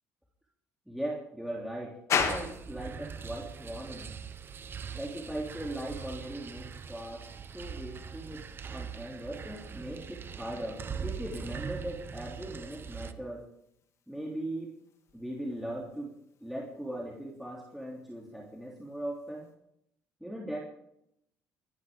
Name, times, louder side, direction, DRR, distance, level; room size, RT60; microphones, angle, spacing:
voice 1, 0.9-4.1 4.9-7.3 7.5-8.4 8.7-13.4 14.1-14.7 15.1-16.1 16.4-19.5 20.2-20.6, right 1 dB, ahead, -3 dB, 3.2 m, -39 dB
sound 1, 2.1-19.6, left 6 dB, 55° left, 2.9 m, -42 dB
sound 2, 2.2-13.1, right 6 dB, 35° right, 1.1 m, -42 dB
23.5 x 12.0 x 3.8 m, 0.76 s
supercardioid pair, 90°, 6 cm